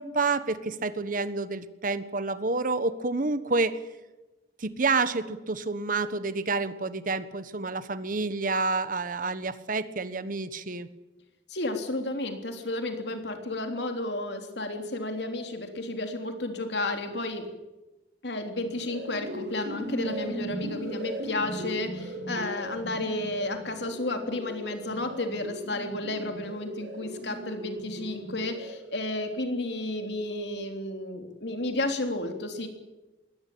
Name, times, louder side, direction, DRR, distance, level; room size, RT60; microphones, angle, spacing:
voice 1, 0.0-3.8 4.6-10.9, right 3 dB, 50° right, 13 dB, 1.3 m, -29 dB
voice 2, 11.5-17.5 18.2-32.7, left 2 dB, 70° left, 6 dB, 3.5 m, -32 dB
sound 1, 18.5-29.1, right 1 dB, 75° right, 6.2 m, -38 dB
22.0 x 17.5 x 8.8 m, 1.1 s
head